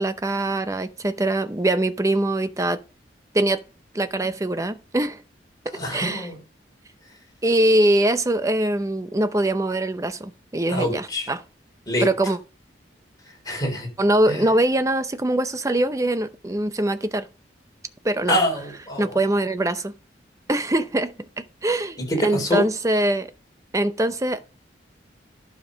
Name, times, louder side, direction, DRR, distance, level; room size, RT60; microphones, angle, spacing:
voice 1, 0.0-2.8 3.3-3.6 3.9-5.2 5.7-6.3 7.4-11.4 12.0-12.4 14.0-17.3 18.0-18.4 19.0-19.9 20.5-23.3 23.7-24.5, right 1 dB, 15° right, 0.6 m, -23 dB
voice 2, 5.7-6.4 10.7-11.3 11.9-12.1 13.4-13.9 14.3-14.5 18.3-19.2 22.0-22.7, equal, 20° left, 3.9 m, -25 dB
11.5 x 5.2 x 5.1 m
head